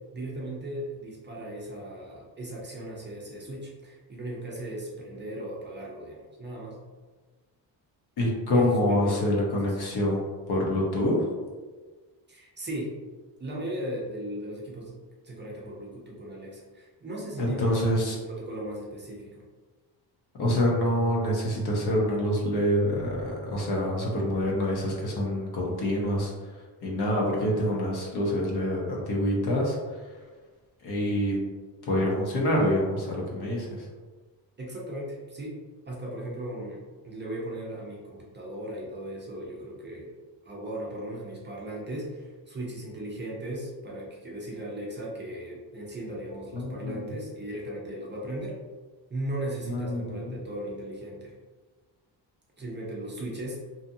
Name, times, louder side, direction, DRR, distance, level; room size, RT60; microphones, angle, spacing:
voice 1, 0.1-6.8 8.5-9.8 12.3-13.0 13.4-15.0 15.2-19.4 34.6-35.6 35.9-40.2 40.4-48.6 49.1-51.3 52.6-53.6, right 1 dB, 25° right, -4 dB, 0.5 m, -37 dB
voice 2, 8.2-11.3 17.4-18.2 20.4-26.3 26.8-30.1 30.8-31.4 31.9-33.9 46.5-47.1 49.6-50.4, left 1 dB, 60° left, -2 dB, 0.9 m, -26 dB
2.7 x 2.4 x 2.6 m, 1.4 s
cardioid pair, 135°, 43 cm